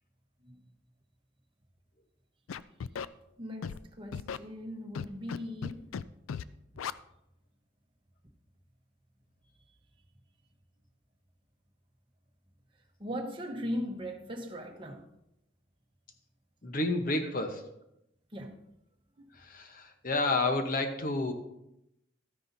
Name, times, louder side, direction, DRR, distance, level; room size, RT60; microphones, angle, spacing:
Scratching (performance technique), 2.5-3.1 3.6-3.8 4.1-4.4 4.9-5.4 5.6-6.0 6.3-6.4 6.8-6.9, left 7 dB, 90° left, 0.4 m, -36 dB
voice 1, 3.4-5.9 13.0-15.1 18.3-18.6 19.2-19.3, equal, 25° right, 1.0 m, -39 dB
voice 2, 16.6-17.7 19.3-21.3, left 2 dB, 45° left, 0.9 m, -30 dB
12.5 x 9.9 x 2.7 m
head